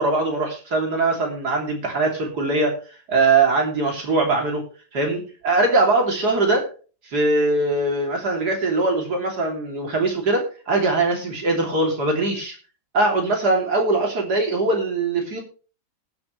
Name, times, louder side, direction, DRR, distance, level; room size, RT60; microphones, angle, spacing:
voice 1, 0.0-2.8 3.1-4.6 4.9-6.7 7.1-12.6 12.9-15.4, right 3 dB, 50° right, 2 dB, 3.5 m, -21 dB
19.0 x 8.0 x 3.2 m, 0.36 s
omnidirectional pair, 2.2 m